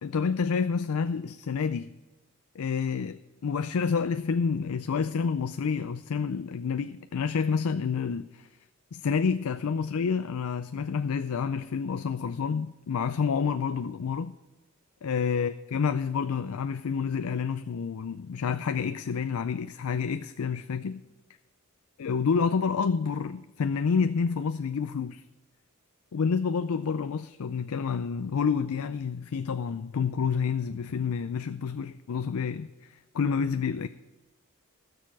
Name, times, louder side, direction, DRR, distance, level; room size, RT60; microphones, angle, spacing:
voice 1, 0.0-1.9 2.6-8.5 8.9-14.4 15.0-21.1 22.0-25.2 26.1-33.9, left 6 dB, 75° left, 0.4 m, -29 dB
16.5 x 6.7 x 4.7 m
head